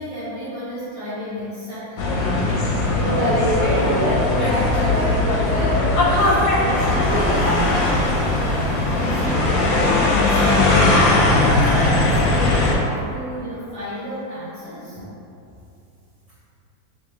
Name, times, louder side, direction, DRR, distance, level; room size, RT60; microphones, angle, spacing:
voice 1, 0.0-2.5 8.9-15.0, left 2 dB, 30° left, -14 dB, 0.6 m, -31 dB
sound 1, 2.0-12.7, left 2 dB, 75° left, 1.3 m, -19 dB
voice 2, 2.9-6.4 6.6-7.5 14.9-15.1, right 1 dB, 85° right, -7 dB, 1.4 m, -25 dB
3.3 x 3.0 x 3.5 m, 2.7 s
omnidirectional pair, 2.1 m